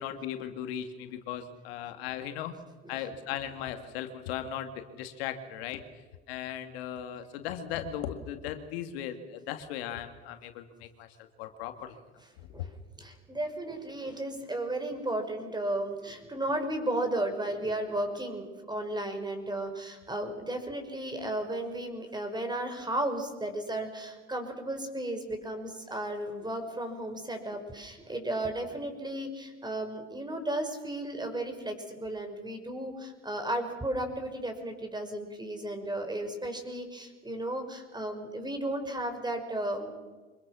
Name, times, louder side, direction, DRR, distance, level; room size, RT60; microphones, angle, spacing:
voice 1, 0.0-2.5 2.9-5.8 6.3-12.0 12.4-12.5 17.1-17.2 18.2-18.3 21.2-21.4, left 10 dB, 90° left, 7 dB, 2.2 m, -37 dB
voice 2, 13.0-39.9, right 1 dB, 15° right, 6 dB, 5.5 m, -34 dB
25.5 x 21.0 x 6.3 m, 1.3 s
supercardioid pair, 85°, 30 cm